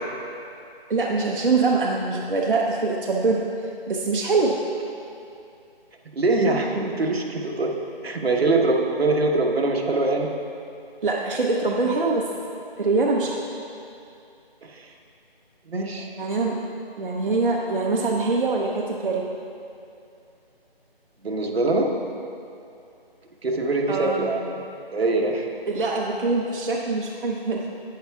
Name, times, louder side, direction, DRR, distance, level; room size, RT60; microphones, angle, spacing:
voice 1, 0.9-3.4 3.9-4.6 11.0-12.2 12.8-13.4 16.2-16.6 17.0-19.3 23.9-24.2 25.7-27.6, right 3 dB, 60° right, -2 dB, 0.8 m, -23 dB
voice 2, 6.1-7.7 8.0-10.3 14.6-14.9 15.7-16.1 21.2-21.9 23.4-24.6 24.9-25.5, right 2 dB, 80° right, 1 dB, 1.1 m, -23 dB
10.5 x 9.1 x 2.3 m, 2.6 s
figure-of-eight pair, 175°, 30 cm